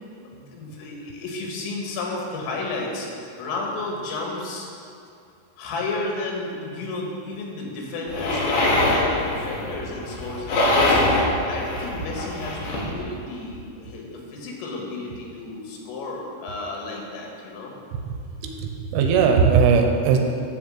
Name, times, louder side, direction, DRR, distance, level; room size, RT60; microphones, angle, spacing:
voice 1, 0.3-3.1 3.4-4.7 5.6-11.0 11.5-17.7, left 3 dB, 85° left, -1 dB, 4.2 m, -32 dB
sound 1, 8.1-12.9, left 1 dB, 60° left, 3.8 m, -23 dB
voice 2, 17.9-20.2, right 6 dB, 80° right, 3 dB, 3.1 m, -19 dB
12.5 x 4.2 x 7.7 m, 2.4 s
omnidirectional pair, 5.7 m